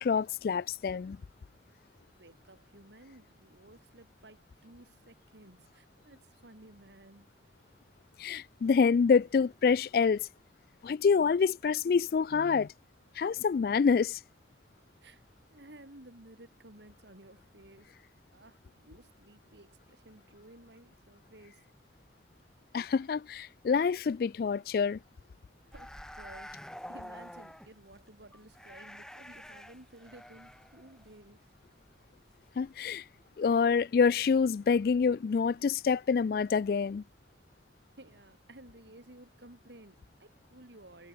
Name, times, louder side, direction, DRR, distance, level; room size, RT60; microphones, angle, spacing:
voice 1, 0.0-1.2 8.2-10.3 10.8-12.7 13.2-14.2 22.7-25.0 32.6-33.0 33.4-37.0, left 5 dB, 55° left, 0.3 m, -27 dB
voice 2, 2.2-7.3 15.0-15.2 15.5-17.9 18.3-21.7 25.7-31.5 38.0-41.1, right 1 dB, 75° right, 3.5 m, -55 dB
sound 1, 25.7-32.3 32.6-32.8, equal, 5° left, 2.0 m, -48 dB
head